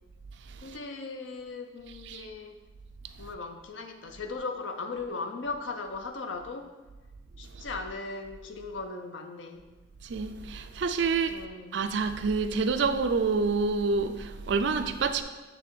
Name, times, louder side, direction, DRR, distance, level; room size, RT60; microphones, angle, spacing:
voice 1, 0.6-2.6 3.2-6.7 7.4-9.6 11.3-11.8, left 3 dB, 85° left, 0.6 m, -38 dB
voice 2, 10.0-11.4 11.7-15.2, right 4 dB, 70° right, 0.4 m, -27 dB
7.7 x 3.4 x 4.6 m
head